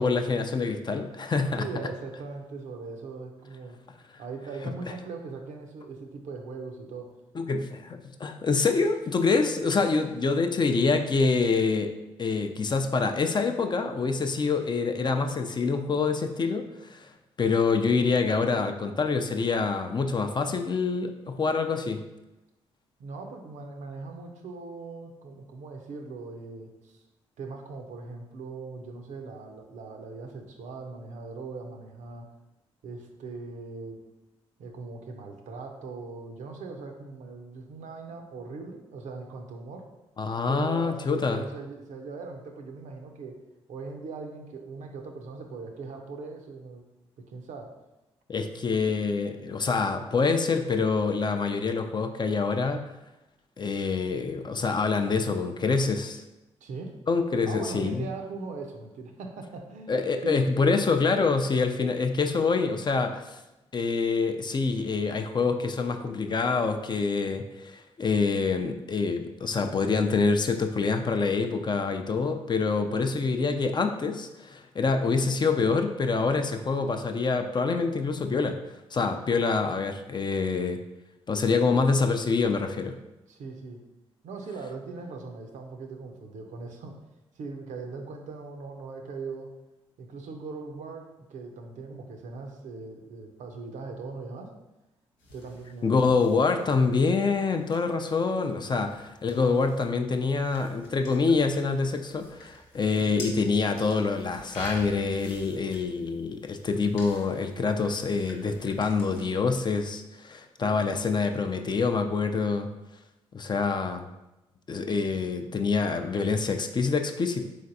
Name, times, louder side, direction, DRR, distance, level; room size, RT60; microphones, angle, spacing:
voice 1, 0.0-1.7 7.4-11.9 12.2-17.1 17.4-22.0 40.2-41.4 48.3-52.8 53.6-56.2 57.1-58.0 59.9-63.4 63.7-78.6 78.9-80.8 81.3-83.0 95.8-112.7 113.3-114.1 114.7-117.4, left 4 dB, 30° left, 5 dB, 0.4 m, -26 dB
voice 2, 1.6-3.8 4.2-7.1 7.6-7.7 23.0-27.0 27.4-32.3 32.8-34.0 34.6-39.9 40.5-43.4 43.7-46.8 47.2-47.7 48.7-48.8 56.6-57.0 57.5-60.4 83.3-83.8 84.2-87.0 87.4-89.5 90.0-94.5 95.3-96.0 98.6-98.8, right 4 dB, 60° right, 4 dB, 0.6 m, -40 dB
sound 1, 95.2-109.2, left 1 dB, 85° left, 0.7 m, -48 dB
3.9 x 3.3 x 2.6 m, 0.98 s
hypercardioid pair, 40°, 14 cm